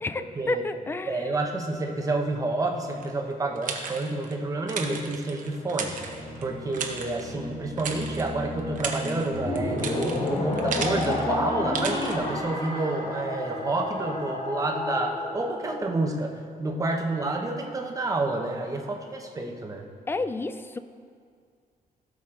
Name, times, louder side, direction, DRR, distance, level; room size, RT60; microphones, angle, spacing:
voice 1, 0.0-1.3 20.1-20.8, left 3 dB, 15° left, 11 dB, 0.3 m, -31 dB
voice 2, 1.0-6.0 6.4-19.9, right 2 dB, 20° right, 2 dB, 0.9 m, -29 dB
sound 1, 3.0-4.3 4.7-6.4 6.7-7.3 7.8-8.3 8.6-11.3 11.7-12.2, right 5 dB, 60° right, 1.0 m, -34 dB
sound 2, 5.4-12.4, equal, 55° left, 1.9 m, -39 dB
sound 3, 9.3-15.8, left 2 dB, 40° left, 1.2 m, -30 dB
16.5 x 6.3 x 3.8 m, 2.1 s
wide cardioid pair, 180°, 15 cm